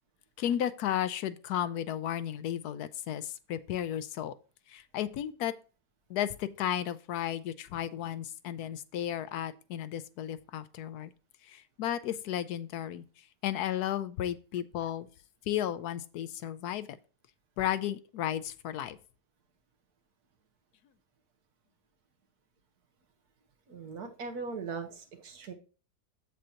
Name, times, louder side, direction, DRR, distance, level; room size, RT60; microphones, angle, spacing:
voice 1, 0.4-4.3 4.7-5.5 6.1-11.1 11.4-15.1 15.5-17.0 17.6-19.0, left 11 dB, 80° left, 1.1 m, -34 dB
voice 2, 23.7-25.5, right 4 dB, 70° right, 1.7 m, -39 dB
7.7 x 7.6 x 2.8 m
omnidirectional pair, 1.7 m